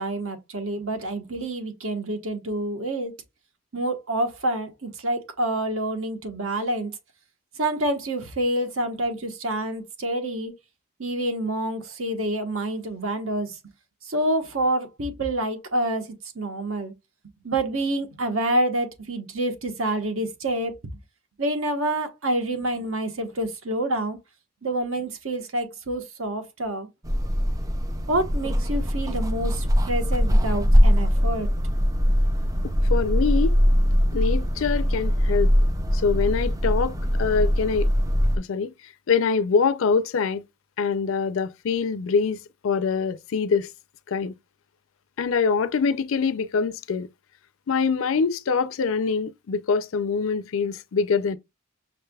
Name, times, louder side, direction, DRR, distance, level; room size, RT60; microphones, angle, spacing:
voice 1, 0.0-3.1 3.7-6.9 7.6-10.5 11.0-13.6 14.0-16.1 16.3-16.9 17.4-20.7 21.4-24.2 24.6-26.9 28.1-31.5, right 1 dB, 70° right, 1.1 m, -27 dB
sound 1, 27.0-38.4, equal, 15° right, 0.4 m, -21 dB
voice 2, 32.6-33.6 34.1-35.5 35.9-37.9 38.4-40.4 40.8-43.7 44.1-44.3 45.2-47.1 47.7-51.4, left 5 dB, 65° left, 0.4 m, -24 dB
6.2 x 3.2 x 2.3 m
head